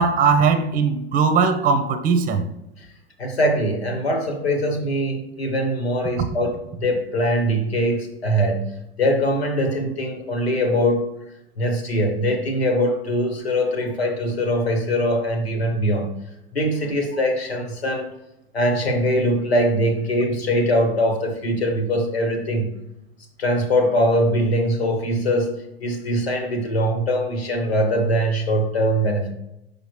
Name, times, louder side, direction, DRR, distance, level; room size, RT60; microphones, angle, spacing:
voice 1, 0.0-2.5, right 5 dB, 25° right, 0.7 m, -19 dB
voice 2, 3.2-11.1 11.6-16.2 16.5-18.1 18.5-22.8 23.4-29.3, equal, 80° left, 1.6 m, -22 dB
5.8 x 5.0 x 3.2 m
hypercardioid pair, 95°, 31 cm